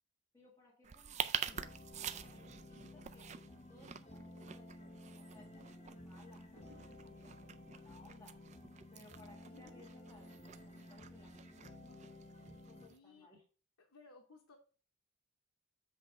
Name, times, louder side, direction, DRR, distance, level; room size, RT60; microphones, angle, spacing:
voice 1, 0.3-1.8 2.1-3.3 3.7-8.3 8.9-13.4, left 2 dB, 15° left, -3 dB, 1.5 m, -63 dB
sound 1, 0.8-13.0, right 8 dB, 30° right, 0.3 m, -47 dB
sound 2, 1.5-12.9, left 1 dB, 30° left, 0.7 m, -54 dB
sound 3, 5.1-5.2 6.5-9.7 9.9-10.4, right 1 dB, 50° right, 0.7 m, -70 dB
voice 2, 6.5-7.0 9.5-9.8 12.9-13.3 13.8-14.6, left 3 dB, 90° left, 2 dB, 0.9 m, -60 dB
7.7 x 3.3 x 4.8 m, 0.38 s
head